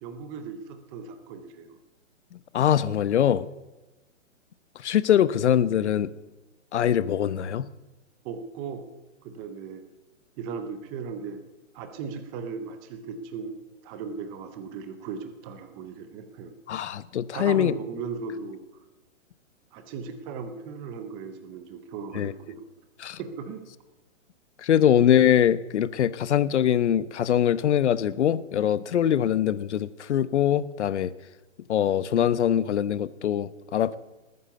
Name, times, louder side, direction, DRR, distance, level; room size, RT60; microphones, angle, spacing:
voice 1, 0.0-1.8 8.2-8.9 9.2-9.8 10.4-11.4 11.7-13.6 13.8-16.5 17.3-18.6 19.7-22.6 23.2-23.6, right 5 dB, 10° right, 9 dB, 0.5 m, -37 dB
voice 2, 2.5-3.5 4.8-6.1 6.7-7.7 16.7-17.7 22.1-22.3 23.0-23.2 24.6-31.1 31.7-34.0, left 10 dB, 60° left, 16 dB, 1.0 m, -23 dB
19.5 x 9.7 x 6.8 m, 1.1 s
hypercardioid pair, 145°, 39 cm